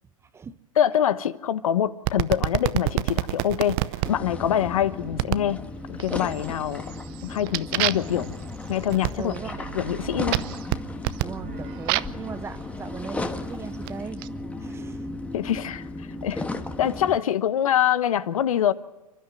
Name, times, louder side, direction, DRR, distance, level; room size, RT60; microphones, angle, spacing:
voice 1, 0.2-0.6 9.2-9.6 11.2-14.2 14.6-15.1 16.3-16.4, right 6 dB, 15° right, 13 dB, 0.9 m, -38 dB
voice 2, 0.8-3.8 4.1-5.6 5.9-6.8 7.2-8.3 8.7-9.3 9.7-10.4 15.3-16.4 16.8-18.7, left 10 dB, 70° left, 13 dB, 1.2 m, -24 dB
sound 1, 2.1-4.1 5.2-5.5 6.0-6.5 6.9-12.2 13.0-14.3, right 18 dB, 40° right, 0.7 m, -28 dB
sound 2, 4.0-17.2, left 2 dB, 5° left, 1.4 m, -35 dB
29.5 x 12.0 x 7.8 m, 1.1 s
hypercardioid pair, 120°, 18 cm